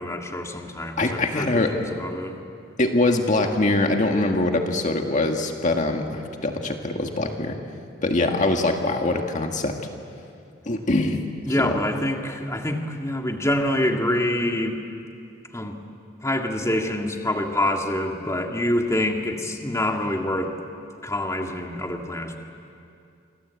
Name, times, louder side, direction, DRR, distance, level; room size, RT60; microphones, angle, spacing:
voice 1, 0.0-2.4 11.5-14.8 15.5-15.8 16.2-20.5 21.0-22.4, left 1 dB, 15° left, 2 dB, 2.0 m, -26 dB
voice 2, 1.0-1.7 2.8-7.6 8.0-9.8 10.7-11.2 11.6-11.8, left 2 dB, 40° left, 3 dB, 1.8 m, -23 dB
28.0 x 25.5 x 8.3 m, 2.5 s
head